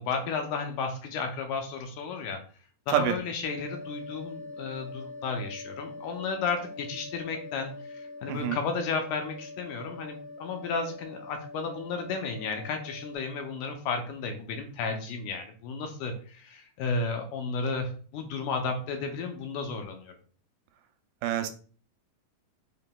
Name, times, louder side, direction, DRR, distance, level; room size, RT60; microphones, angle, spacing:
voice 1, 0.0-2.4 2.9-20.1, left 4 dB, 80° left, 4 dB, 2.0 m, -33 dB
sound 1, 3.4-13.2, left 3 dB, 60° left, 2.6 m, -43 dB
voice 2, 8.3-8.6 21.2-21.5, right 11 dB, 90° right, 7 dB, 2.2 m, -26 dB
5.8 x 3.4 x 2.2 m, 0.42 s
omnidirectional pair, 3.9 m